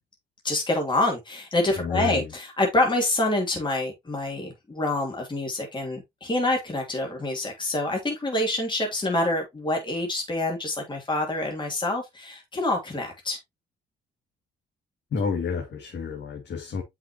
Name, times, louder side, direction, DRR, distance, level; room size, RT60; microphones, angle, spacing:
voice 1, 0.4-13.4, left 2 dB, 25° left, 2.7 m, -26 dB
voice 2, 1.8-2.3 15.1-16.8, left 5 dB, 60° left, 2.1 m, -30 dB
7.9 x 5.9 x 2.9 m
cardioid pair, 90°, 20 cm